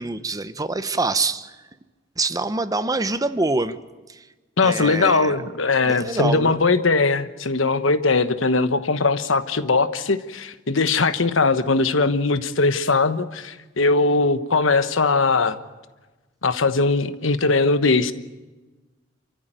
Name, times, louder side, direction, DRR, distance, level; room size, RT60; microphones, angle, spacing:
voice 1, 0.0-1.6 2.2-3.8 4.1-4.3 4.6-5.4 5.9-6.6, right 3 dB, 20° right, 12 dB, 0.9 m, -25 dB
voice 2, 4.6-15.6 16.4-18.1, left 3 dB, 85° left, 11 dB, 1.2 m, -20 dB
28.0 x 14.5 x 9.1 m, 1.2 s
head